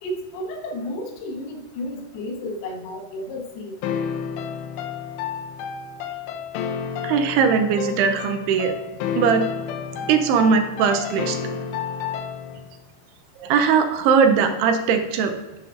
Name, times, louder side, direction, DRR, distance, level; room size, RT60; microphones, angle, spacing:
voice 1, 0.0-3.8, left 1 dB, 70° left, 2 dB, 3.0 m, -32 dB
sound 1, 3.8-12.7, left 7 dB, 90° left, 2.8 m, -30 dB
voice 2, 7.0-8.7 9.2-9.5 10.1-11.4 13.4-15.3, right 6 dB, 80° right, 7 dB, 2.6 m, -19 dB
11.5 x 7.9 x 2.6 m, 1.1 s
omnidirectional pair, 4.9 m